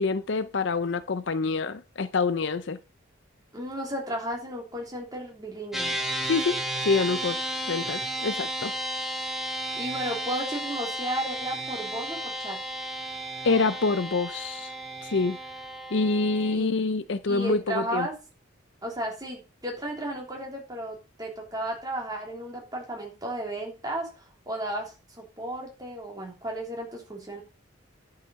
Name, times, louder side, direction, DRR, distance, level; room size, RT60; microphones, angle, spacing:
voice 1, 0.0-2.8 6.3-7.4 7.7-8.7 13.4-14.7 15.0-15.4 15.9-18.1, left 4 dB, 55° left, 0.5 m, -26 dB
voice 2, 3.5-6.0 9.7-12.6 16.5-16.7 17.2-18.1 18.8-27.4, right 1 dB, 20° right, 3.1 m, -34 dB
sound 1, 5.7-16.6, right 1 dB, ahead, 1.5 m, -33 dB
10.5 x 5.8 x 5.2 m
head